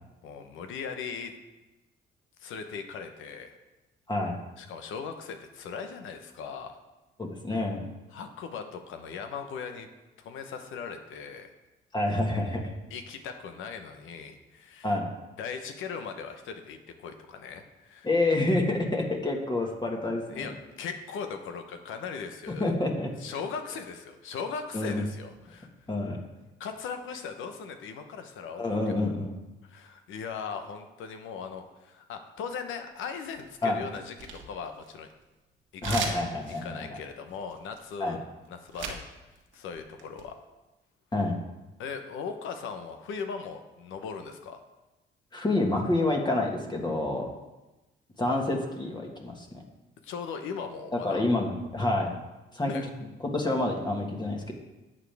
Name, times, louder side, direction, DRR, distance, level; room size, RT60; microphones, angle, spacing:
voice 1, 0.2-1.3 2.4-3.6 4.6-6.8 8.1-9.9 10.2-11.5 12.9-15.0 15.4-18.1 20.3-22.7 23.2-25.9 26.6-28.8 29.6-35.1 35.7-36.2 36.6-38.2 38.5-39.0 39.5-40.4 41.8-44.6 50.0-51.2 52.6-52.9, left 6 dB, 85° left, 7 dB, 1.0 m, -39 dB
voice 2, 7.2-7.8 11.9-12.7 14.8-15.1 18.0-20.5 22.6-23.1 24.7-25.0 25.9-26.2 28.6-29.3 33.6-33.8 35.8-37.0 38.0-38.2 41.1-41.3 45.3-47.3 48.2-49.5 51.0-52.1 52.5-52.9 53.3-54.6, left 2 dB, 20° left, 0 dB, 1.6 m, -28 dB
playing cards, 33.0-33.6 33.9-35.2 35.8-39.1 39.4-40.2, right 5 dB, 75° right, 1.4 m, -38 dB
11.0 x 7.4 x 3.5 m, 1.1 s
cardioid pair, 90°, 20 cm